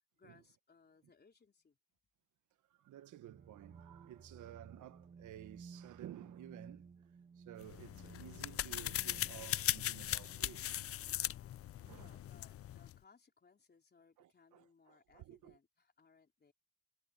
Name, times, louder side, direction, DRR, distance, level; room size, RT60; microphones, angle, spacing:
voice 1, 0.2-1.8 11.9-16.5, left 5 dB, 35° left, 3.8 m, -66 dB
voice 2, 2.6-10.7 11.7-12.2 14.2-15.6, right 12 dB, 80° right, 1.4 m, -54 dB
sound 1, 3.3-10.9, right 5 dB, 30° right, 1.2 m, -57 dB
sound 2, 7.6-13.0, left 12 dB, 50° left, 0.5 m, -39 dB
cardioid pair, 90°, 30 cm